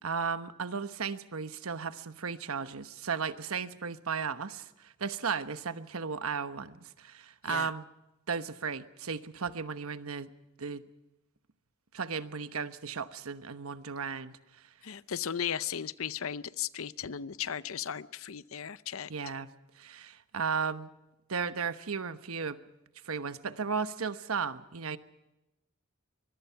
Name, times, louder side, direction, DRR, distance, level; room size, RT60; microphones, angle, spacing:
voice 1, 0.0-7.8 8.3-10.3 10.6-10.8 11.9-14.6 19.1-19.5 19.8-20.9 21.3-22.6 23.0-25.0, right 5 dB, 85° right, 11 dB, 1.1 m, -35 dB
voice 2, 14.8-19.1, left 8 dB, 75° left, 16 dB, 0.7 m, -36 dB
24.5 x 21.5 x 5.8 m, 0.94 s
head